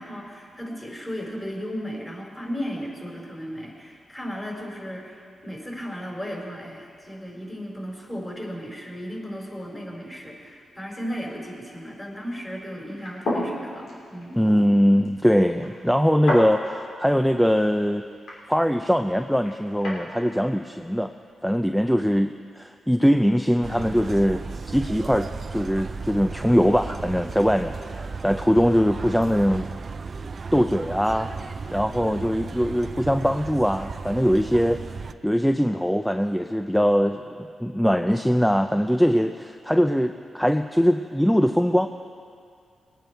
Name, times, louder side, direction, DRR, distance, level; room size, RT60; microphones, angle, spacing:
voice 1, 0.0-14.4, equal, 20° left, -2 dB, 4.2 m, -35 dB
sound 1, 12.9-20.1, left 1 dB, 80° left, 3.2 m, -34 dB
voice 2, 14.4-18.1 18.5-21.1 21.4-29.7 30.5-31.3 31.7-34.8 35.2-41.9, equal, ahead, 7 dB, 0.5 m, -22 dB
sound 2, 23.6-35.1, right 4 dB, 50° right, 0.4 m, -35 dB
21.0 x 9.1 x 4.6 m, 2.2 s
cardioid pair, 60°, 0 cm